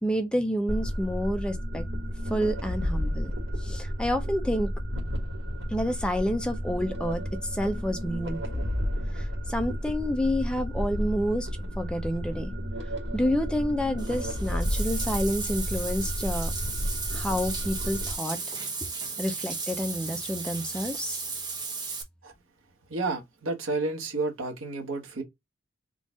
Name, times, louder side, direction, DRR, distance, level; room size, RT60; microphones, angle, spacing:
voice 1, 0.0-1.8 2.3-3.3 3.6-4.7 5.7-8.6 9.1-11.5 11.8-12.5 13.1-16.5 17.1-18.4 19.2-21.2, equal, 5° left, 0.5 m, -29 dB
sound 1, 0.7-18.1, equal, 65° right, 1.4 m, -32 dB
Bathtub (filling or washing), 14.0-22.0, right 4 dB, 20° right, 0.9 m, -35 dB
voice 2, 22.9-25.2, right 3 dB, 90° right, 1.3 m, -31 dB
3.9 x 2.5 x 3.6 m
head